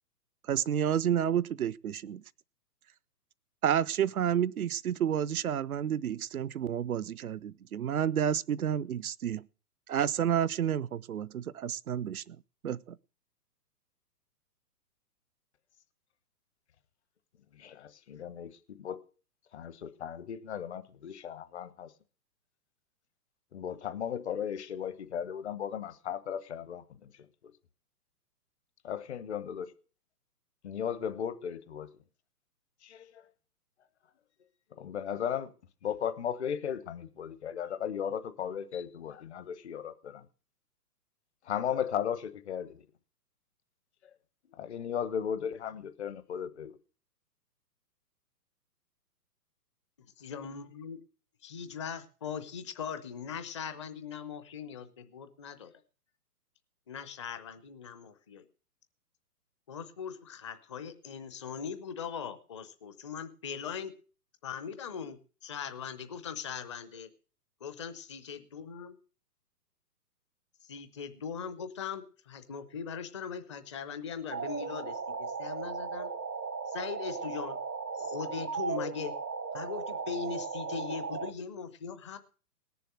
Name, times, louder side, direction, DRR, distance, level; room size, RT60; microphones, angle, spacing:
voice 1, 0.5-2.2 3.6-9.5 9.9-12.4 12.6-13.0, right 9 dB, 65° right, 0.6 m, -30 dB
voice 2, 17.5-19.0 19.5-21.9 23.5-27.2 28.8-29.7 30.6-31.9 32.8-33.2 34.8-35.5 35.8-40.2 41.4-42.8 44.0-44.1 44.6-46.8, left 8 dB, 45° left, 1.1 m, -36 dB
voice 3, 50.2-51.0 51.4-55.7 56.9-58.5 59.7-63.9 64.4-67.1 67.6-68.9 70.6-76.1 76.7-77.6 77.9-79.1 79.5-82.2, left 7 dB, 20° left, 0.6 m, -40 dB
sound 1, 74.3-81.3, right 5 dB, 85° right, 1.1 m, -36 dB
18.5 x 7.0 x 6.2 m
figure-of-eight pair, 120°, 48 cm